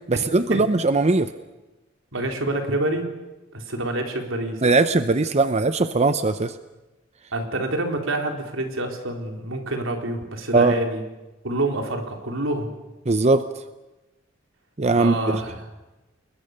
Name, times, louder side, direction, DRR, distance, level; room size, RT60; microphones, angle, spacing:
voice 1, 0.1-1.3 4.6-6.5 10.5-10.8 13.1-13.4 14.8-15.2, right 3 dB, 35° right, 11 dB, 0.7 m, -19 dB
voice 2, 2.1-3.1 3.5-4.8 7.3-11.0 11.4-12.7 14.9-15.7, right 1 dB, 80° right, 3 dB, 4.0 m, -27 dB
29.5 x 21.5 x 6.7 m, 1.1 s
head